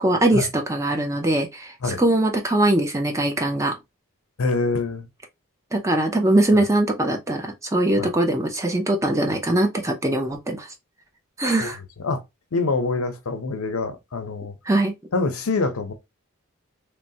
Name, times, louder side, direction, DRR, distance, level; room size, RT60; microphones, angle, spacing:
voice 1, 0.0-3.7 5.7-10.7 11.4-11.8 14.7-14.9, right 1 dB, 15° right, 0.4 m, -21 dB
voice 2, 4.4-5.1 6.5-6.6 8.0-8.1 11.6-11.7 12.0-12.2 12.5-14.5 15.1-15.9, left 3 dB, 75° left, 0.6 m, -25 dB
3.1 x 2.1 x 2.6 m
head